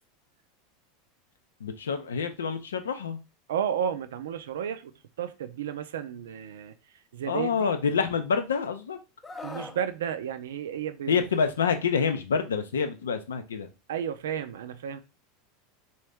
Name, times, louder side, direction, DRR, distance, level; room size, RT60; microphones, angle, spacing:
voice 1, 1.6-3.2 7.3-9.0 11.1-13.7, left 6 dB, 85° left, 0.5 m, -27 dB
voice 2, 3.5-4.9 5.2-6.7 7.1-7.8 9.4-11.2 13.9-15.0, right 8 dB, 80° right, 0.4 m, -32 dB
Screaming, 9.2-9.8 11.3-11.5, left 3 dB, 15° left, 0.5 m, -40 dB
3.1 x 2.7 x 3.4 m
hypercardioid pair, 90°, 0 cm